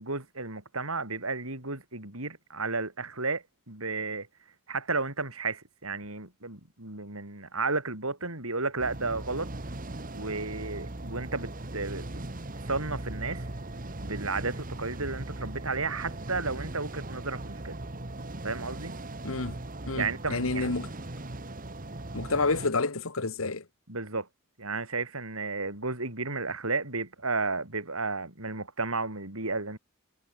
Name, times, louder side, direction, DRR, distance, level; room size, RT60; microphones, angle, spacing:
voice 1, 0.0-4.3 4.7-9.5 10.1-12.2 12.6-13.5 14.0-17.8 18.4-19.0 19.9-20.7 23.9-24.3 24.6-29.8, right 3 dB, 80° right, 7.4 m, -33 dB
sound 1, 8.8-22.7, right 1 dB, 40° right, 1.8 m, -39 dB
voice 2, 19.9-20.9 22.1-23.6, left 3 dB, 70° left, 1.7 m, -29 dB
head